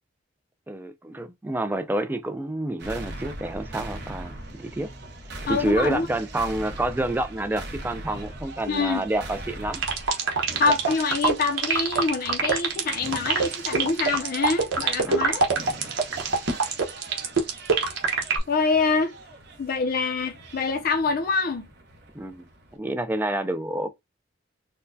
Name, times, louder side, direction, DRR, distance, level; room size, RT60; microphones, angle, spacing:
voice 1, 0.7-4.9 5.4-9.8 15.0-15.3 16.2-16.3 22.1-23.9, right 1 dB, 10° right, 0.4 m, -28 dB
sound 1, 2.8-22.8, right 2 dB, 60° right, 0.9 m, -41 dB
voice 2, 5.5-6.1 8.7-9.0 10.6-15.5 18.5-19.1 19.6-21.7, left 4 dB, 50° left, 0.5 m, -25 dB
sound 2, 9.7-18.4, right 5 dB, 90° right, 1.0 m, -23 dB
4.3 x 2.1 x 2.6 m
head